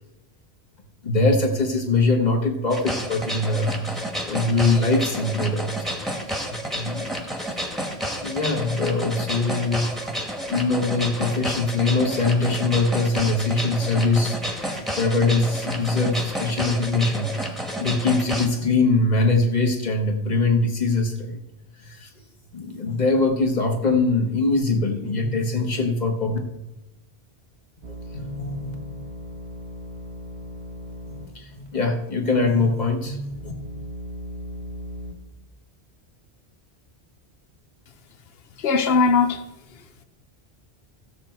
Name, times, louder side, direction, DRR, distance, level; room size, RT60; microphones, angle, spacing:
voice 1, 1.0-7.8 8.2-10.1 10.5-21.4 21.8-22.1 22.5-26.4 28.1-28.7 31.0-33.5, left 3 dB, 40° left, 1.4 m, -23 dB
sound 1, 2.7-18.5, equal, ahead, 1.3 m, -30 dB
sound 2, 27.8-31.4 31.7-31.8 32.4-35.1, equal, 85° right, 1.4 m, -38 dB
voice 2, 38.6-40.0, left 4 dB, 65° left, 1.1 m, -21 dB
15.5 x 6.8 x 4.5 m
omnidirectional pair, 1.1 m